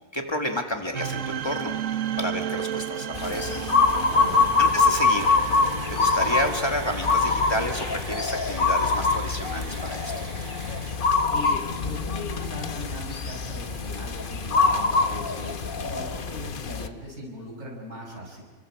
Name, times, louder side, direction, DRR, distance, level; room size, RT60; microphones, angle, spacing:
voice 1, 0.1-1.7 2.2-3.6 4.6-5.4 5.9-10.3, equal, 20° left, 3 dB, 2.0 m, -30 dB
sound 1, 0.9-11.0, right 9 dB, 90° right, 1.3 m, -34 dB
sound 2, 3.1-16.9, left 4 dB, 50° left, 1.1 m, -24 dB
voice 2, 4.0-4.4 11.2-18.4, left 1 dB, 75° right, -2 dB, 6.3 m, -39 dB
29.0 x 24.0 x 4.9 m, 1.3 s
omnidirectional pair, 1.2 m